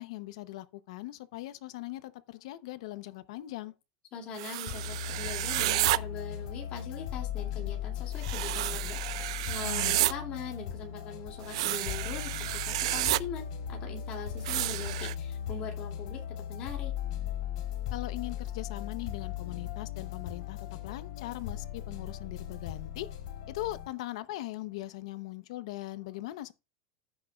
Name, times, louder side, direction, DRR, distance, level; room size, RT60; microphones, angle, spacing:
voice 1, 0.0-3.7 9.6-10.0 17.9-23.1 23.5-26.5, left 16 dB, 70° left, 0.7 m, -40 dB
voice 2, 4.1-16.9, left 5 dB, 30° left, 2.3 m, -42 dB
sound 1, 4.4-6.0 8.2-10.1 11.4-13.2 14.5-15.1, right 17 dB, 70° right, 0.4 m, -30 dB
sound 2, 4.7-23.9, left 10 dB, 85° left, 3.2 m, -38 dB
14.5 x 6.2 x 2.3 m
supercardioid pair, 180°, 3 cm